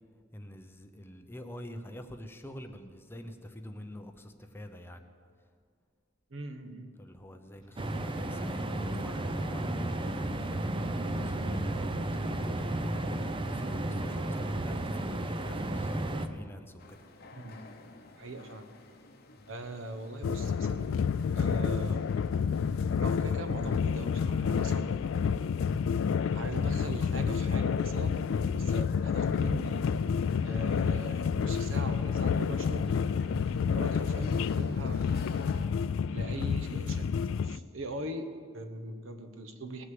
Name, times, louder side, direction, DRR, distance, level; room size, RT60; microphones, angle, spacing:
voice 1, 0.3-5.0 7.0-12.0 12.2-17.0 33.3-33.5, equal, 10° left, 6 dB, 0.7 m, -46 dB
voice 2, 6.3-6.9 17.3-17.6 18.2-18.7 19.5-20.9 21.4-22.1 23.0-24.9 26.3-28.3 28.5-29.8 30.4-33.0 33.5-35.4 36.1-37.0 37.4-39.8, right 1 dB, 70° right, 8 dB, 1.1 m, -40 dB
sound 1, 7.8-16.3, right 1 dB, 25° right, 0.6 m, -33 dB
sound 2, 16.8-35.7, left 2 dB, 50° left, 1.0 m, -52 dB
sound 3, 20.2-37.6, left 6 dB, 70° left, 0.3 m, -29 dB
18.5 x 6.3 x 7.7 m, 2.2 s
head